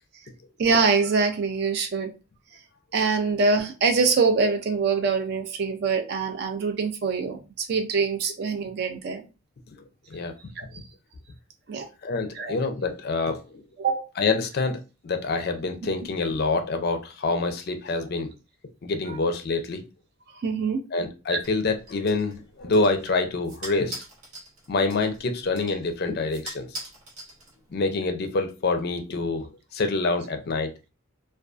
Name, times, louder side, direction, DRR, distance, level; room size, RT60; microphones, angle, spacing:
voice 1, 0.6-2.1 2.9-9.3 10.6-10.8 11.7-11.9 12.3-12.6 13.8-14.1 19.1-19.2 20.4-20.9 21.3-21.4, right 4 dB, 50° right, 6 dB, 0.3 m, -24 dB
voice 2, 12.0-13.6 14.2-18.3 18.8-19.8 20.9-23.9 24.7-26.8 27.7-30.7, left 3 dB, 45° left, 6 dB, 0.4 m, -26 dB
sound 1, 21.4-27.9, right 1 dB, 85° right, 1.0 m, -43 dB
2.4 x 2.3 x 2.3 m, 0.30 s
head